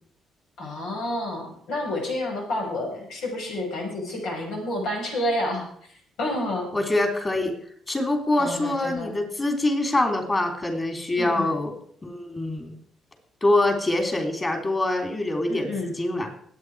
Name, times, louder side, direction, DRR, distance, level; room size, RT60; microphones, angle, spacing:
voice 1, 0.6-5.7 6.2-6.8 8.4-9.1 11.2-11.6 15.5-15.9, left 1 dB, 85° left, 0 dB, 5.8 m, -29 dB
voice 2, 6.7-7.5 7.9-11.7 12.0-12.7 13.4-16.3, left 2 dB, 20° left, 4 dB, 3.3 m, -24 dB
20.5 x 8.6 x 4.8 m, 0.63 s
cardioid pair, 110°, 0 cm